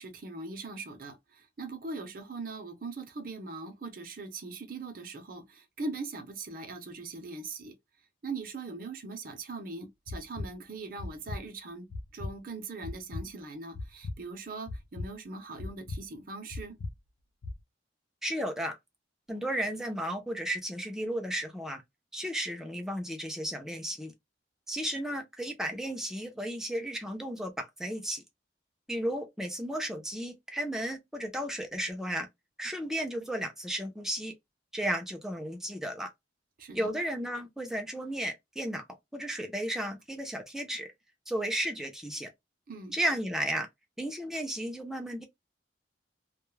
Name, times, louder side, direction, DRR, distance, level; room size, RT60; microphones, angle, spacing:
voice 1, 0.0-7.7 8.2-11.9 12.1-16.8 36.6-36.9 42.7-43.0, right 3 dB, 50° right, 0.6 m, -41 dB
sound 1, 10.1-10.5 11.0-11.4 11.9-12.3 12.8-13.2 13.7-14.2 14.7-15.1 15.6-16.0 16.5-16.9 17.4-17.6, left 2 dB, 65° left, 0.5 m, -37 dB
voice 2, 18.2-18.8 19.3-21.8 22.1-24.1 24.7-28.2 28.9-32.3 32.6-34.3 34.7-36.1 36.7-38.8 39.1-40.9 41.3-42.3 42.9-43.7 44.0-45.2, right 1 dB, 5° right, 0.5 m, -34 dB
2.2 x 2.0 x 3.0 m
head